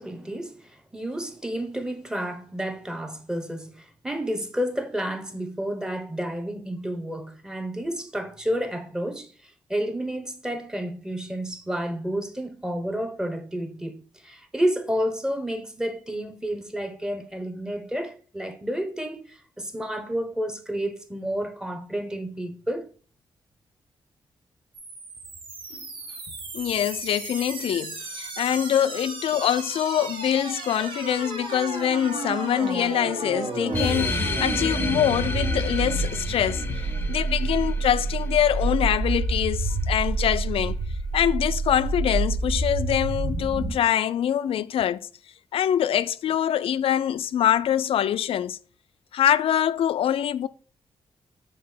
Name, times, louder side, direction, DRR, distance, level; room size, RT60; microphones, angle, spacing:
voice 1, 0.0-22.9, equal, 5° right, 0.9 m, -30 dB
sound 1, 24.8-43.7, right 2 dB, 65° right, 1.5 m, -29 dB
voice 2, 26.5-40.8 41.1-45.1 45.5-48.6 49.1-50.5, left 10 dB, 75° left, 0.4 m, -24 dB
sound 2, 33.7-38.7, left 3 dB, 20° left, 0.6 m, -32 dB
6.6 x 3.6 x 3.9 m
cardioid pair, 115°, 10 cm